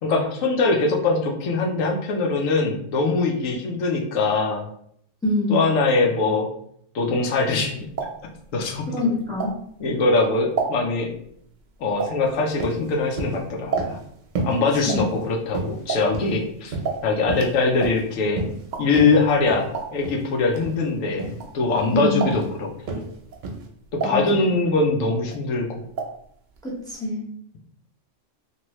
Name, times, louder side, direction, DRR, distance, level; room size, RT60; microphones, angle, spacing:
voice 1, 0.0-4.7 5.5-6.5 6.9-7.9 8.5-8.9 9.8-11.1 11.8-14.0 14.4-16.7 17.0-18.4 18.8-22.7 23.0-23.1 23.9-25.8, left 3 dB, 90° left, 0 dB, 1.1 m, -22 dB
voice 2, 5.2-5.6 8.9-9.5 14.8-15.0 21.9-22.3 24.0-24.4 26.6-27.3, left 1 dB, 5° left, -4 dB, 0.6 m, -25 dB
sound 1, 7.4-9.9 10.3-14.2 14.5-21.8 22.1-22.7 23.2-24.9 25.2-26.3 26.5-26.6 26.9-27.0, right 5 dB, 55° right, 0.5 m, -32 dB
sound 2, 12.2-12.3 12.6-12.8 13.2-13.4 13.8-14.0 14.3-14.6 14.9-15.2 15.5-16.4 16.7-17.5 17.8-18.0 18.4-18.6 18.9-19.1 19.5-19.7 20.0-20.2 20.5-20.8 21.2-21.4 21.7-22.0 22.3-22.5 22.9-23.1 23.4-23.6, right 3 dB, 75° right, 1.0 m, -30 dB
2.9 x 2.6 x 3.0 m, 0.69 s
omnidirectional pair, 1.3 m